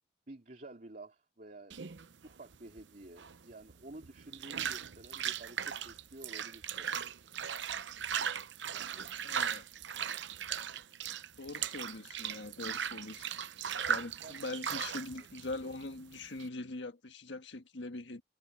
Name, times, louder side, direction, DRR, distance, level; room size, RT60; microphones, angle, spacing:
voice 1, 0.3-1.8 2.2-7.0 8.7-9.1 14.2-14.4 15.1-15.3, right 2 dB, 45° right, 2.7 m, -51 dB
sound 1, 1.7-16.5, right 8 dB, 75° right, 0.8 m, -38 dB
voice 2, 9.2-9.6 11.4-13.3 13.9-18.2, left 2 dB, 75° left, 1.6 m, -42 dB
head